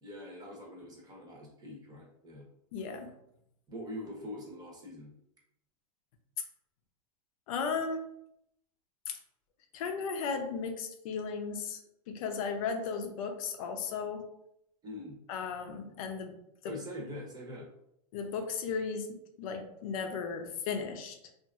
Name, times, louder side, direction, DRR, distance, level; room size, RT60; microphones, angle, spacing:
voice 1, 0.0-2.5 3.7-5.1 14.8-15.2 16.6-17.7, left 1 dB, 20° right, -2 dB, 0.8 m, -43 dB
voice 2, 2.7-3.1 7.5-8.0 9.7-11.8 12.1-14.3 15.3-16.3 16.6-16.7 18.1-21.2, left 5 dB, 70° left, 5 dB, 0.5 m, -35 dB
2.8 x 2.5 x 2.3 m, 0.78 s
supercardioid pair, 125°, 19 cm